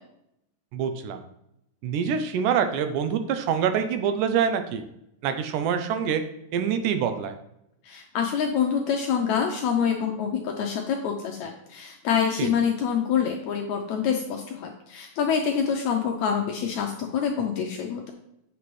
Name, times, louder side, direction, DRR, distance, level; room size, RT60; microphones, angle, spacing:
voice 1, 0.7-1.2 1.8-4.8 5.2-6.2 6.5-7.3 12.4-12.5, right 7 dB, 80° right, 8 dB, 2.1 m, -25 dB
voice 2, 7.8-18.1, left 7 dB, 80° left, 3 dB, 1.7 m, -26 dB
8.4 x 5.9 x 3.1 m, 0.82 s
omnidirectional pair, 3.8 m